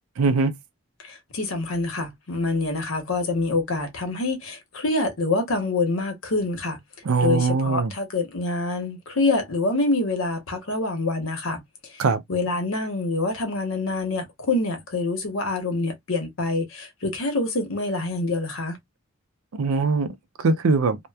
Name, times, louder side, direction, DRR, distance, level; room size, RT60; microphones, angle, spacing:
voice 1, 0.2-0.5 7.0-7.9 12.0-12.2 19.6-21.0, right 4 dB, 85° right, 0.5 m, -21 dB
voice 2, 1.0-6.8 7.2-12.0 12.3-18.8, left 2 dB, 80° left, 1.0 m, -26 dB
2.9 x 2.1 x 2.2 m
head